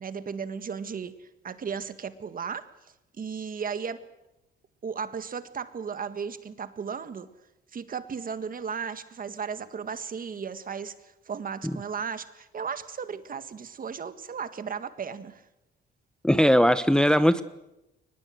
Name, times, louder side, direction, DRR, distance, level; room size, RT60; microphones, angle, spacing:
voice 1, 0.0-2.7 3.2-4.0 4.8-7.3 7.7-15.4, right 6 dB, 45° right, 1.7 m, -35 dB
voice 2, 16.2-17.4, equal, 5° left, 0.9 m, -19 dB
23.0 x 20.5 x 7.9 m
cardioid pair, 90°, 20 cm